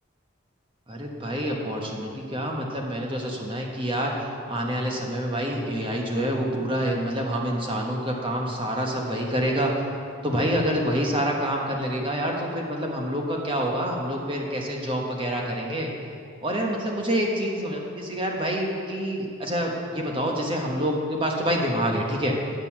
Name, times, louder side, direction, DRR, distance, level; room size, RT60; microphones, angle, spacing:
voice 1, 0.9-4.1 4.5-9.7 10.2-15.9 16.4-22.3, equal, 25° right, 0 dB, 1.1 m, -27 dB
9.1 x 5.3 x 7.3 m, 2.4 s
head